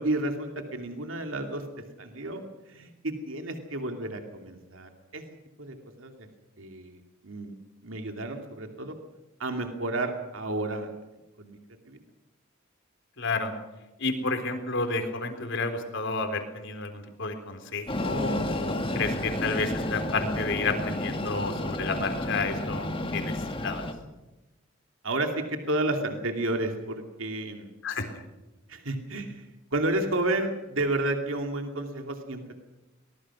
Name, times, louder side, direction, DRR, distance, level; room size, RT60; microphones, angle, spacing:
voice 1, 0.0-1.6 2.0-5.2 5.6-6.3 6.6-7.5 7.8-8.9 9.4-10.9 11.4-11.6 11.9-12.0 19.5-19.6 25.0-27.7 28.7-29.4 29.7-32.6, right 2 dB, 75° right, 5 dB, 2.7 m, -31 dB
voice 2, 13.2-13.5 14.0-23.8 27.8-28.1, left 3 dB, 65° left, 6 dB, 3.9 m, -31 dB
Train, 17.9-23.9, left 1 dB, 25° left, 2.2 m, -31 dB
24.0 x 20.5 x 6.2 m, 1.0 s
head